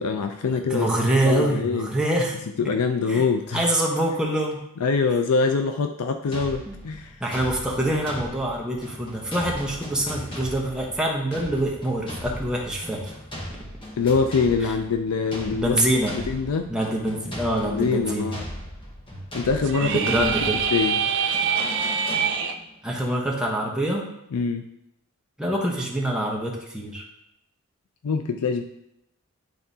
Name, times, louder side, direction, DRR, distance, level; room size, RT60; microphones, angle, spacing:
voice 1, 0.0-0.9 1.2-1.9 2.6-3.6 4.8-7.2 14.0-15.8 16.2-16.7 17.7-18.4 19.3-20.0 20.4-21.0 24.3-24.7 28.0-28.6, left 5 dB, 85° left, 7 dB, 0.4 m, -24 dB
voice 2, 0.7-2.4 3.1-3.2 3.5-4.6 6.7-6.8 7.2-13.1 15.5-16.2 16.7-18.3 19.1-19.2 19.8-20.6 22.8-24.0 25.4-27.0, right 1 dB, 5° right, -2 dB, 1.0 m, -25 dB
sound 1, 6.3-22.8, equal, 20° left, 0.9 m, -38 dB
sound 2, 19.6-22.5, right 6 dB, 55° right, 0.5 m, -25 dB
10.5 x 3.8 x 2.8 m, 0.82 s
head